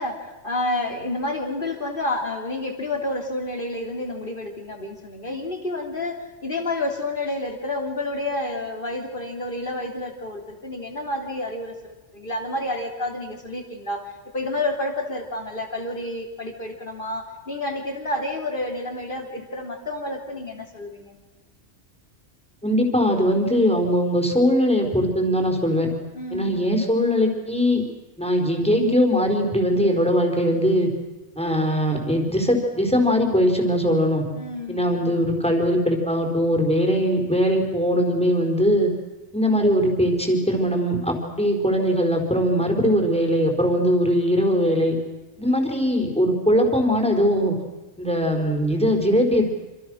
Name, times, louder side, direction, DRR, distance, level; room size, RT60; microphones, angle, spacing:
voice 1, 0.0-21.2 26.1-26.5 34.3-35.2, left 2 dB, 50° left, 3 dB, 3.6 m, -29 dB
voice 2, 22.6-25.9 26.3-27.9 28.2-30.9 31.4-34.2 34.7-38.9 39.3-45.0 45.4-47.6 48.0-49.5, equal, 5° left, 2 dB, 4.5 m, -21 dB
27.5 x 27.0 x 6.5 m, 1.1 s
omnidirectional pair, 1.2 m